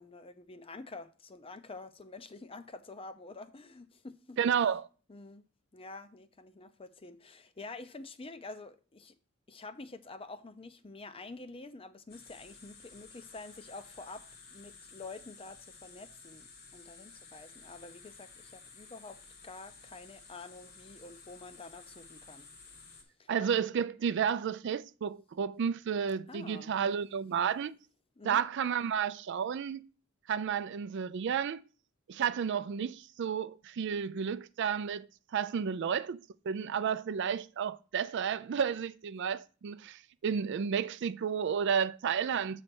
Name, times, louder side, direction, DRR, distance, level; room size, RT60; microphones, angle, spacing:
voice 1, 0.0-4.4 5.1-5.4 5.7-9.1 9.5-19.2 19.4-22.8 23.2-23.3 26.3-26.7 28.2-28.4 35.6-35.8, left 3 dB, 25° left, 0.6 m, -48 dB
voice 2, 4.4-4.9 23.3-27.8 28.2-29.9 30.3-31.6 32.1-35.1 35.3-36.2 36.4-42.6, right 7 dB, 60° right, 0.4 m, -32 dB
sound 1, 12.1-23.0, left 4 dB, 50° left, 1.5 m, -54 dB
7.5 x 3.3 x 6.0 m
head